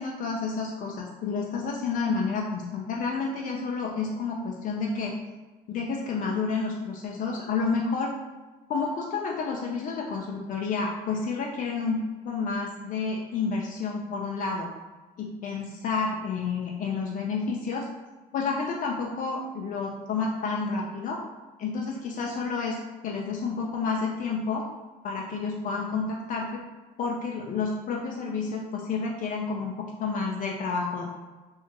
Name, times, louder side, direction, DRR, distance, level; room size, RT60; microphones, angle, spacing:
voice 1, 0.0-5.1 5.7-8.1 8.7-14.7 15.2-17.9 18.3-21.2 21.6-22.8 23.0-24.6 25.0-26.6 27.0-31.0, left 4 dB, 55° left, -1 dB, 0.4 m, -30 dB
2.9 x 2.3 x 2.8 m, 1.2 s
cardioid pair, 110°, 17 cm